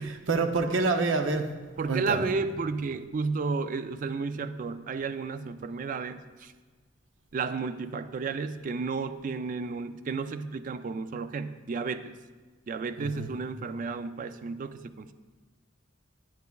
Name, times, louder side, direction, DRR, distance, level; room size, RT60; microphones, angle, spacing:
voice 1, 0.0-1.5 1.9-2.3 13.0-13.3, right 3 dB, 80° right, 6 dB, 0.6 m, -27 dB
voice 2, 1.8-6.5 7.3-12.1 12.7-15.1, right 4 dB, 45° right, 12 dB, 0.3 m, -32 dB
9.2 x 7.1 x 2.3 m, 1.4 s
head